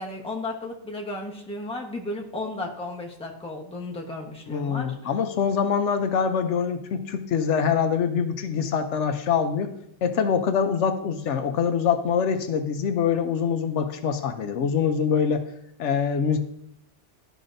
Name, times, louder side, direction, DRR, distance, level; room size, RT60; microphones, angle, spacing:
voice 1, 0.0-4.9, left 2 dB, 5° left, -1 dB, 1.0 m, -34 dB
voice 2, 4.5-9.7 10.0-15.4 15.8-16.4, left 7 dB, 80° left, 8 dB, 1.0 m, -24 dB
12.5 x 5.0 x 2.6 m, 0.74 s
omnidirectional pair, 1.2 m